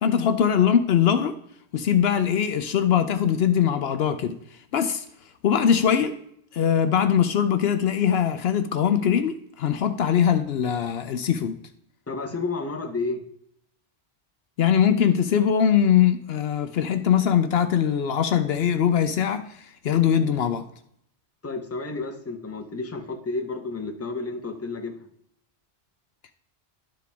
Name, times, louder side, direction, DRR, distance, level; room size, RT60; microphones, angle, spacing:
voice 1, 0.0-1.4 1.7-4.4 4.7-5.0 5.4-6.2 6.5-11.6 14.6-20.7, left 8 dB, 70° left, 0.8 m, -21 dB
voice 2, 12.1-13.2 21.4-25.1, left 3 dB, 15° left, 0.8 m, -31 dB
11.5 x 4.8 x 3.4 m
omnidirectional pair, 1.1 m